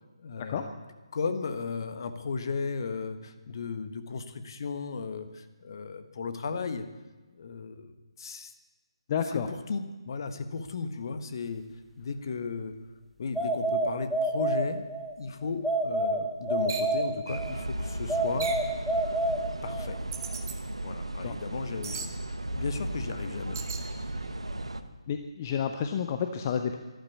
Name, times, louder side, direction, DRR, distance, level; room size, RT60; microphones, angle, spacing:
voice 1, 0.2-0.7 1.1-6.9 7.4-8.5 9.3-11.7 12.0-12.7 13.2-14.9 15.2-18.5 19.6-20.0 20.8-22.1 22.5-24.1, left 4 dB, 50° left, 9 dB, 1.4 m, -35 dB
voice 2, 9.1-9.5 21.2-21.3 25.1-26.8, left 7 dB, 30° left, 7 dB, 0.8 m, -30 dB
sound 1, 13.4-15.1 15.6-17.6 18.1-20.0, right 1 dB, ahead, 0.9 m, -28 dB
sound 2, 16.7-16.9 18.4-18.7 20.1-20.6 21.8-22.1 23.5-23.9, right 6 dB, 40° right, 1.7 m, -37 dB
sound 3, 17.3-24.8, right 1 dB, 85° right, 1.1 m, -36 dB
12.5 x 12.0 x 8.3 m, 1.2 s
figure-of-eight pair, 150°, 3 cm